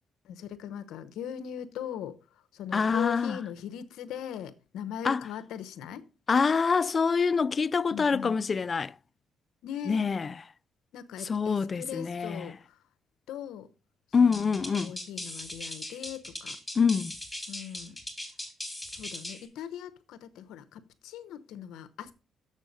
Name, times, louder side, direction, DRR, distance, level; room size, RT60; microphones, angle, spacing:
voice 1, 0.2-6.1 7.9-8.4 9.6-10.0 10.9-12.8 13.3-13.7 14.2-16.6 17.5-18.0 18.9-22.1, left 9 dB, 85° left, 0.8 m, -40 dB
voice 2, 2.7-3.4 5.0-5.2 6.3-8.9 9.9-10.4 11.2-12.5 14.1-14.9 16.8-17.1, left 5 dB, 40° left, 0.3 m, -25 dB
sound 1, 14.3-19.5, left 1 dB, 5° left, 2.9 m, -39 dB
7.1 x 6.4 x 5.2 m
cardioid pair, 90°, 0 cm